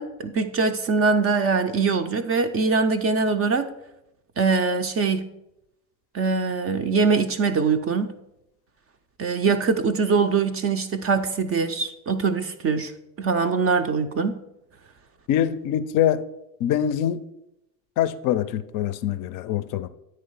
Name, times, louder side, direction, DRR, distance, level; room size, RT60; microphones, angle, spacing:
voice 1, 0.0-3.7 4.4-5.3 6.1-8.1 9.2-12.9 13.2-14.4, right 4 dB, 30° right, 0.4 m, -23 dB
voice 2, 15.3-16.2 16.6-17.2 18.0-19.9, left 10 dB, 40° left, 0.5 m, -24 dB
9.2 x 3.2 x 5.4 m
hypercardioid pair, 75°, 50 cm